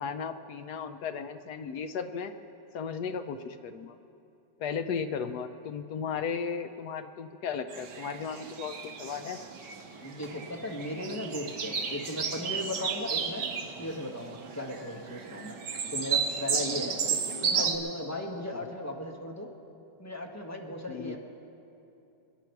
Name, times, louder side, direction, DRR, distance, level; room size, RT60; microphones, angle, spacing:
voice 1, 0.0-2.3 2.7-4.0 4.6-9.4 17.1-17.7 18.5-18.7 20.9-21.2, left 6 dB, 70° left, 9 dB, 1.1 m, -35 dB
sound 1, 7.7-17.8, right 6 dB, 70° right, 1.7 m, -33 dB
voice 2, 10.0-13.5 13.8-15.6 15.9-17.0 17.4-19.5 20.0-21.2, left 1 dB, 10° left, 0 dB, 1.2 m, -36 dB
27.5 x 10.5 x 4.6 m, 2.8 s
omnidirectional pair, 2.0 m